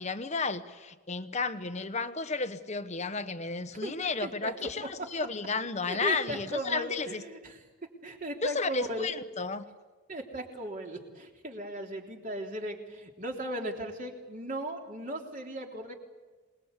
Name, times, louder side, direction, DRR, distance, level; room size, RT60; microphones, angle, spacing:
voice 1, 0.0-7.2 8.4-9.6, left 4 dB, 30° left, 10 dB, 1.1 m, -33 dB
voice 2, 3.7-4.9 5.8-7.6 8.0-9.1 10.1-15.9, right 1 dB, 35° right, 1 dB, 3.4 m, -37 dB
26.5 x 20.5 x 8.3 m, 1.3 s
head